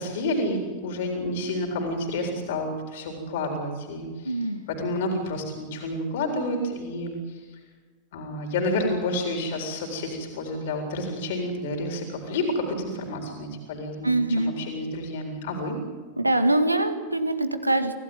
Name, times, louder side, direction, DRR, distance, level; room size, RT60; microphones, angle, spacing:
voice 1, 0.0-4.3 4.8-7.1 8.1-15.8, left 1 dB, 55° left, 2 dB, 4.1 m, -29 dB
voice 2, 4.3-4.6 14.0-14.5 16.2-17.9, right 2 dB, 85° right, 9 dB, 1.9 m, -23 dB
27.0 x 16.5 x 9.3 m, 1.4 s
figure-of-eight pair, 90°, 0 cm